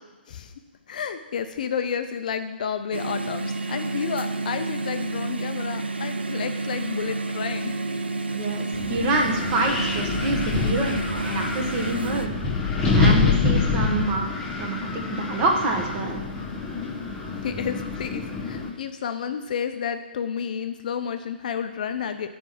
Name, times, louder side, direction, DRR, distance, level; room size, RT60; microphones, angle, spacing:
voice 1, 0.9-7.8 17.3-22.4, left 7 dB, 50° left, 8 dB, 0.6 m, -31 dB
sound 1, 2.9-12.3, right 3 dB, 75° right, 0.6 m, -30 dB
voice 2, 8.3-12.3 12.9-16.2, right 2 dB, 25° right, 1 dB, 1.3 m, -27 dB
Wind, 8.7-18.7, left 4 dB, 10° left, 1.4 m, -26 dB
8.9 x 4.6 x 5.9 m, 1.1 s
figure-of-eight pair, 125°, 6 cm